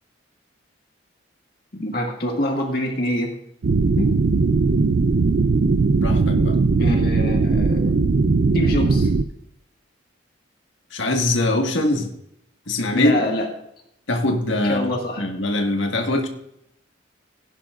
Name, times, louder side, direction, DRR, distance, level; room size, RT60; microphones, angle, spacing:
voice 1, 1.7-3.3 4.0-4.1 6.8-7.9 8.5-9.1 12.9-13.5 14.6-15.2, left 1 dB, 50° left, 0 dB, 1.8 m, -25 dB
sound 1, 3.6-9.2, right 4 dB, 55° right, 0.4 m, -19 dB
voice 2, 6.0-6.6 10.9-12.1 12.7-13.1 14.1-14.9 15.2-16.3, left 2 dB, 70° left, 2 dB, 1.7 m, -22 dB
16.5 x 10.0 x 2.5 m, 0.77 s
head